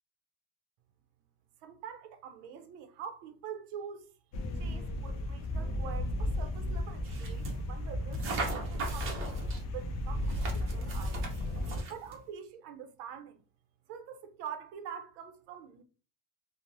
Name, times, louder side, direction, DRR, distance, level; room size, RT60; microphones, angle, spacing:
voice 1, 1.6-4.1 4.5-11.2 11.9-13.4 13.9-15.8, right 8 dB, 75° right, 0.6 m, -45 dB
sound 1, 4.3-11.8, left 1 dB, 45° left, 0.4 m, -34 dB
sound 2, 7.0-7.6 8.1-9.6 10.2-12.2, right 4 dB, 35° right, 0.6 m, -39 dB
2.9 x 2.1 x 2.5 m
cardioid pair, 175°, 39 cm